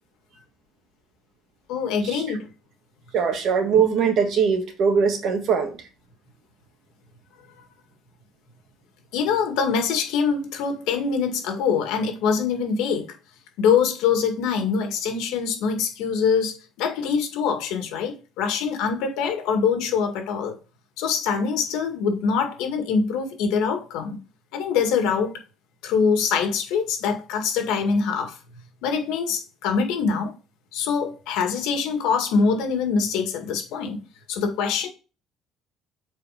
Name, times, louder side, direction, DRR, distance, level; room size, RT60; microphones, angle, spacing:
voice 1, 1.7-2.5 9.1-13.1 13.6-20.5 21.0-24.2 24.5-25.4 25.8-28.4 28.8-30.3 30.7-34.0 34.3-34.9, left 6 dB, 80° left, 2.0 m, -24 dB
voice 2, 3.1-5.7, right 6 dB, 45° right, 1.5 m, -21 dB
7.6 x 4.4 x 5.1 m
cardioid pair, 175°, 0 cm